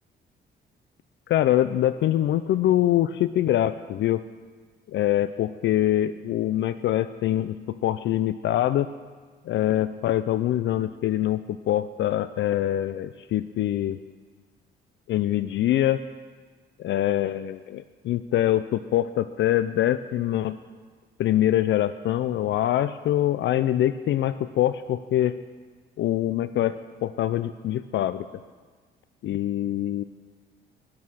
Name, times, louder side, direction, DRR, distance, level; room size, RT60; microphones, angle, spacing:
voice 1, 1.3-4.2 4.9-8.9 9.5-14.0 15.1-16.0 16.8-20.6 21.2-25.3 26.0-26.7 27.0-28.3 29.2-30.0, left 12 dB, 70° left, 13 dB, 0.5 m, -24 dB
13.0 x 11.0 x 6.3 m, 1.5 s
cardioid pair, 90°, 20 cm